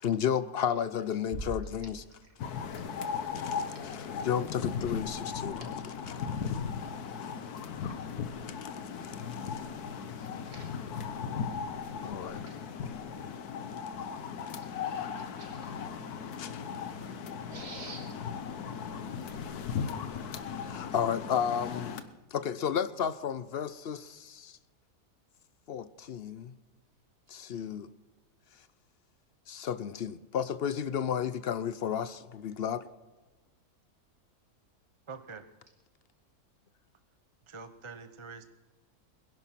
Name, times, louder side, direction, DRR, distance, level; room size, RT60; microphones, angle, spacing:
voice 1, 0.0-2.0 3.3-6.6 8.6-8.7 9.5-9.6 12.0-12.4 12.8-12.9 16.4-16.6 20.6-22.0 22.3-24.6 25.7-26.5 27.3-27.9 29.5-32.9, left 8 dB, 55° left, 0.7 m, -33 dB
sound 1, 1.3-3.2, equal, 5° left, 2.2 m, -43 dB
sound 2, 2.4-22.0, left 6 dB, 75° left, 1.5 m, -37 dB
voice 2, 10.2-10.7 12.2-12.6 14.6-15.7 17.5-18.1 27.3-27.4, right 2 dB, 90° right, 3.6 m, -49 dB
voice 3, 35.1-35.5 37.5-38.4, right 4 dB, 30° right, 0.6 m, -45 dB
21.5 x 11.0 x 5.9 m
omnidirectional pair, 1.6 m